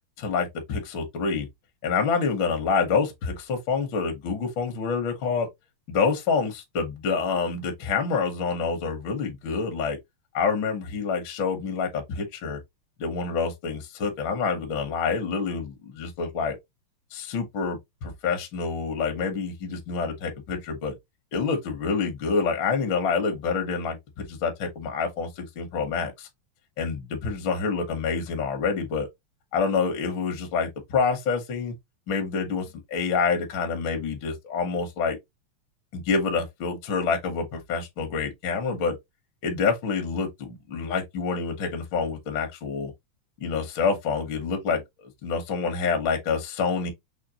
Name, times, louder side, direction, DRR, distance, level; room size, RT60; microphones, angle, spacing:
voice 1, 0.2-1.5 1.8-5.5 5.9-10.0 10.3-12.6 13.0-16.6 17.1-20.9 21.3-26.3 26.8-29.1 29.5-31.7 32.1-35.2 35.9-39.0 39.4-42.9 43.4-46.9, left 5 dB, 70° left, 1.1 m, -27 dB
5.7 x 2.2 x 2.7 m
omnidirectional pair, 3.4 m